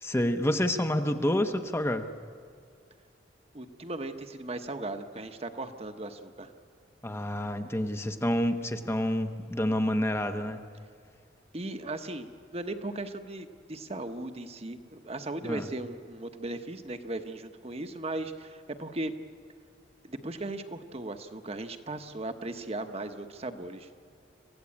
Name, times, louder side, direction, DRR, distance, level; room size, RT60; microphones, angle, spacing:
voice 1, 0.0-2.1 7.0-10.6 15.4-15.7, left 1 dB, 15° left, 7 dB, 0.8 m, -28 dB
voice 2, 3.5-6.5 11.5-19.1 20.0-23.9, right 2 dB, 35° right, 7 dB, 1.1 m, -37 dB
26.5 x 16.0 x 8.6 m, 2.3 s
head